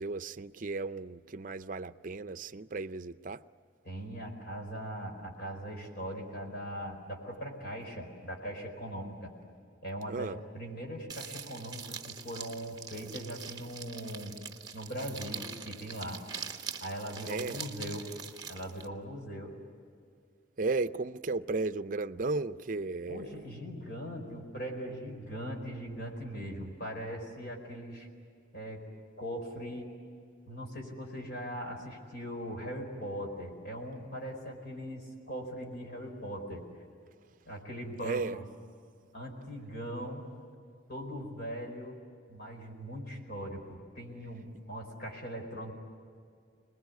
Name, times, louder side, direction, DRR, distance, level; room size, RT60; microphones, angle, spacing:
voice 1, 0.0-3.4 10.1-10.4 17.3-17.6 20.6-23.3 38.0-38.4, right 3 dB, 40° right, 0.6 m, -34 dB
voice 2, 3.8-9.3 9.8-14.3 14.7-16.2 16.8-18.1 18.5-19.5 23.1-28.1 28.5-28.8 29.2-29.9 30.5-36.7 37.5-38.5 39.1-40.2 40.9-42.0 42.3-45.7, equal, 50° left, 4.6 m, -40 dB
sound 1, 11.1-18.9, right 6 dB, 20° right, 1.1 m, -43 dB
27.0 x 20.5 x 9.5 m
head